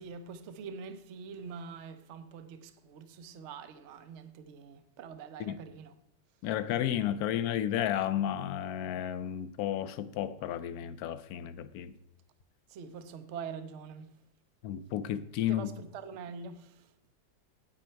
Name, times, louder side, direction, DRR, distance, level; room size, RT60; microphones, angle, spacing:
voice 1, 0.0-5.9 12.7-14.1 15.5-16.9, right 6 dB, 65° right, 0.7 m, -44 dB
voice 2, 6.4-11.9 14.6-15.7, left 11 dB, 70° left, 0.9 m, -32 dB
8.7 x 8.6 x 4.4 m
omnidirectional pair, 2.0 m